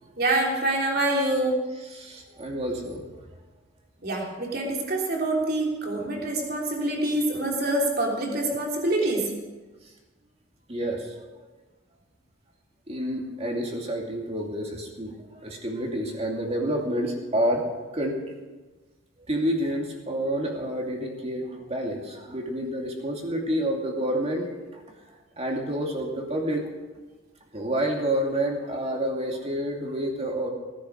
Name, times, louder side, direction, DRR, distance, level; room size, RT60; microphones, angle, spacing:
voice 1, 0.2-1.7 4.0-9.4, right 1 dB, 50° right, 0 dB, 3.3 m, -26 dB
voice 2, 1.9-3.0 10.7-11.2 12.9-17.6 17.9-18.2 19.3-24.8 25.4-26.7 27.5-30.5, right 1 dB, 30° right, 0 dB, 2.6 m, -29 dB
17.5 x 10.0 x 6.4 m, 1.2 s
head